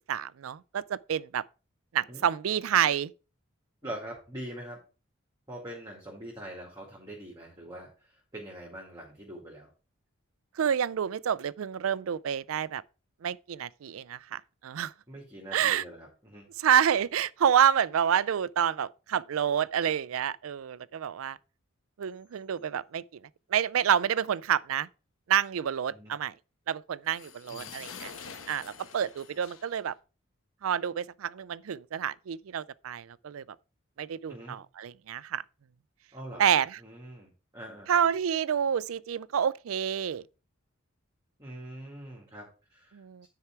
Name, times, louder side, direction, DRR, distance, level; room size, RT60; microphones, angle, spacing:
voice 1, 0.1-1.4 1.9-3.1 10.6-12.8 13.2-14.9 15.5-15.8 16.6-21.4 22.0-23.2 23.5-24.9 25.3-26.3 26.7-28.1 28.5-29.9 30.6-33.4 34.0-35.4 36.4-36.8 37.9-40.2 42.9-43.3, right 9 dB, 85° right, 0.4 m, -28 dB
voice 2, 3.8-4.8 5.5-9.7 15.1-16.5 25.9-26.1 27.5-27.7 34.3-34.6 36.1-36.4 36.8-37.9 41.4-43.3, right 1 dB, 15° right, 2.0 m, -43 dB
sound 1, 27.0-29.9, left 6 dB, 85° left, 1.2 m, -46 dB
9.8 x 4.7 x 4.6 m
head